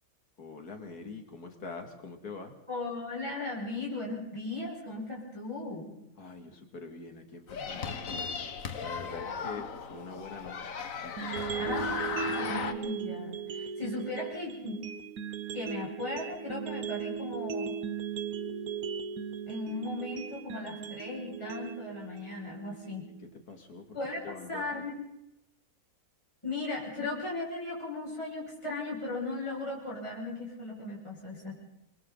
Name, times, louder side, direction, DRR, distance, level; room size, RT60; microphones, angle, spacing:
voice 1, 0.4-2.6 6.2-8.3 8.8-10.7 11.0-11.7 23.2-24.0 24.2-24.7, left 4 dB, 85° left, 5 dB, 3.0 m, -44 dB
voice 2, 2.7-5.9 7.7-7.8 11.6-14.8 15.5-17.8 19.5-23.1 23.9-24.9 26.4-31.6, left 2 dB, 20° left, -5 dB, 6.4 m, -37 dB
sound 1, 7.5-12.7, left 6 dB, 60° left, 1.6 m, -36 dB
sound 2, 11.2-23.2, right 7 dB, 70° right, 1.5 m, -38 dB
29.5 x 23.0 x 4.0 m, 0.84 s
omnidirectional pair, 1.6 m